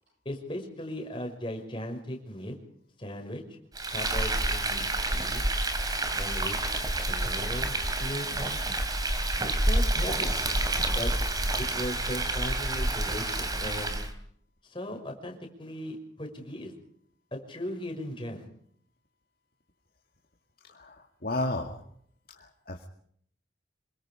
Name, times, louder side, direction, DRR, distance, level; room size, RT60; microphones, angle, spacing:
voice 1, 0.3-2.6 3.0-3.4 3.9-5.4 6.2-6.8 7.1-8.6 9.6-10.3 10.9-11.1 11.6-14.0 14.6-16.7 17.3-18.5, equal, 25° left, 2 dB, 5.7 m, -37 dB
Frying (food), 3.7-14.1, right 1 dB, 20° right, 3.1 m, -28 dB
voice 2, 20.7-21.8 22.3-22.9, left 1 dB, 50° left, 2 dB, 2.1 m, -33 dB
26.5 x 23.5 x 5.1 m, 0.63 s
head